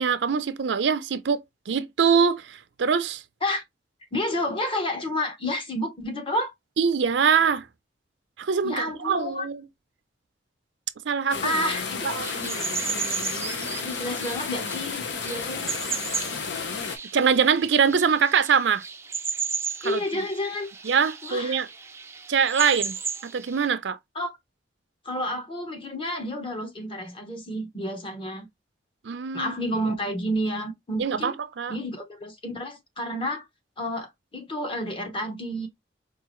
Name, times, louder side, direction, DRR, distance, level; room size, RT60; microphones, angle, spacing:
voice 1, 0.0-1.4 1.7-3.2 6.8-7.7 8.4-9.6 11.1-11.5 12.2-12.5 17.1-18.8 19.8-20.2 20.8-21.7 22.3-23.0 23.2-24.0 29.0-29.5 31.0-31.7, right 6 dB, 80° right, 0.5 m, -23 dB
voice 2, 4.1-6.5 8.6-9.4 11.4-12.2 13.8-15.7 19.8-20.7 21.2-21.6 24.1-24.4 25.0-28.5 29.3-31.3 31.7-33.5 33.8-35.7, left 1 dB, 30° left, 0.9 m, -30 dB
sound 1, 11.3-17.0, left 5 dB, 80° left, 0.8 m, -32 dB
sound 2, 12.2-23.7, right 6 dB, 15° right, 0.4 m, -35 dB
4.6 x 2.4 x 3.0 m
head